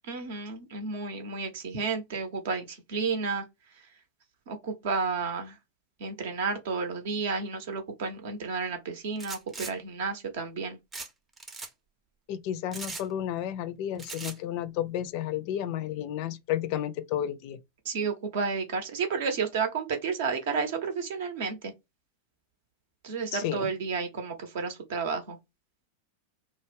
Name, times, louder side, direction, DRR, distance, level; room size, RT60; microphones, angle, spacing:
voice 1, 0.1-3.4 3.8-3.9 4.5-5.6 6.0-10.8 17.8-21.7 23.0-25.4, right 5 dB, 55° right, 0.6 m, -31 dB
sound 1, 9.2-9.7 10.9-11.1 11.4-11.7 12.7-13.1 14.0-14.4, right 3 dB, 15° right, 0.5 m, -39 dB
voice 2, 12.3-17.6 23.3-23.7, left 11 dB, 45° left, 0.4 m, -32 dB
2.3 x 2.0 x 3.2 m
figure-of-eight pair, 90°, 0 cm